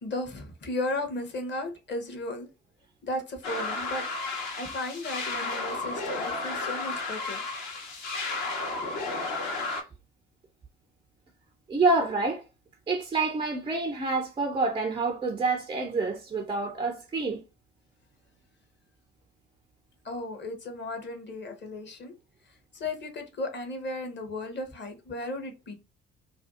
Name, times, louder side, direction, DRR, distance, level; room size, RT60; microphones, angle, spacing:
voice 1, 0.0-2.5 3.0-4.0 4.6-7.4 20.0-22.1 22.4-25.7, left 2 dB, 30° left, 0.8 m, -35 dB
sound 1, 3.4-9.8, left 3 dB, 60° left, 1.0 m, -33 dB
voice 2, 11.7-12.4 12.9-17.4, right 3 dB, 15° right, 0.3 m, -27 dB
2.5 x 2.2 x 2.3 m
figure-of-eight pair, 50°, 35 cm